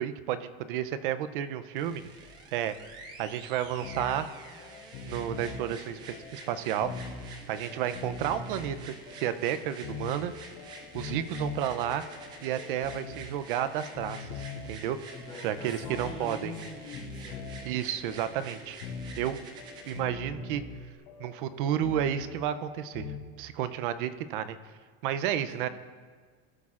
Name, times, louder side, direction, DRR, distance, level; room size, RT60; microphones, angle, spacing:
voice 1, 0.0-2.0 2.5-2.7 3.2-4.3 5.1-6.9 7.5-10.3 10.9-12.0 12.4-15.0 15.4-16.5 17.7-18.8 19.2-19.4 19.9-20.6 21.2-23.1 23.4-24.6 25.0-25.7, right 10 dB, 50° right, 12 dB, 0.6 m, -31 dB
sound 1, 1.8-20.0 20.9-21.0, right 3 dB, 15° right, 0.3 m, -48 dB
sound 2, 3.8-23.2, left 5 dB, 80° left, 2.6 m, -43 dB
voice 2, 15.1-17.5 25.5-25.7, left 2 dB, 15° left, -6 dB, 3.2 m, -43 dB
19.5 x 8.2 x 2.5 m, 1.5 s
supercardioid pair, 180°, 33 cm